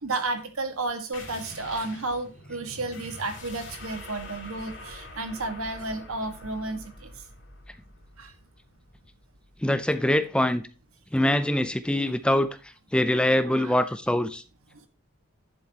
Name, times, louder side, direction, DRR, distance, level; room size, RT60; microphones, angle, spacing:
voice 1, 0.0-7.1 8.2-8.3 13.4-13.7 14.7-14.8, right 2 dB, 85° right, 1.7 m, -32 dB
sound 1, 1.1-10.3, left 2 dB, 60° left, 3.1 m, -45 dB
voice 2, 9.6-10.7 11.1-12.5 12.9-14.4, left 1 dB, 5° left, 0.4 m, -23 dB
10.5 x 7.8 x 2.9 m
head